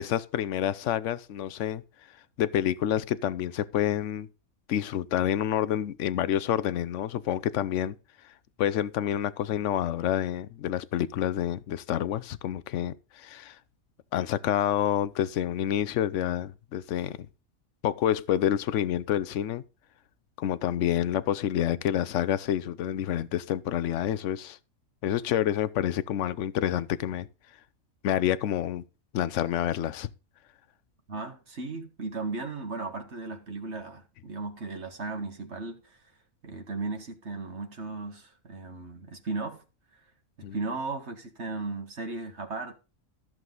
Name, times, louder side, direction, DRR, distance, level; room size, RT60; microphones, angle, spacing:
voice 1, 0.0-1.8 2.4-4.3 4.7-8.0 8.6-13.6 14.1-17.3 17.8-19.6 20.4-24.6 25.0-27.3 28.0-28.8 29.1-30.1 40.4-40.5, left 11 dB, 65° left, 0.9 m, -28 dB
voice 2, 31.1-36.0 36.4-39.6 39.9-40.0 40.5-42.8, right 3 dB, 50° right, 1.7 m, -36 dB
14.0 x 7.5 x 3.8 m
omnidirectional pair, 1.5 m